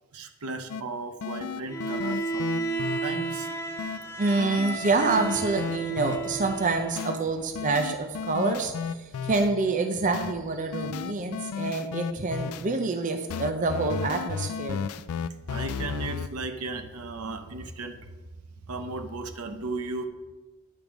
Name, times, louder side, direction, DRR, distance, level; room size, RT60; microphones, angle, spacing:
voice 1, 0.1-3.5 15.5-18.0 18.7-20.1, right 3 dB, 85° right, 8 dB, 0.8 m, -35 dB
sound 1, 0.7-0.8 1.2-3.0 3.8-4.0 4.4-6.2 7.0-7.2 7.5-9.5 10.1-10.3 10.7-12.6 13.3-16.3, left 6 dB, 80° left, 0.4 m, -33 dB
Bowed string instrument, 1.7-7.3, right 3 dB, 10° left, 0.8 m, -33 dB
voice 2, 4.2-14.9, right 3 dB, 35° right, 6 dB, 0.5 m, -27 dB
9.3 x 5.2 x 6.1 m, 1.2 s
head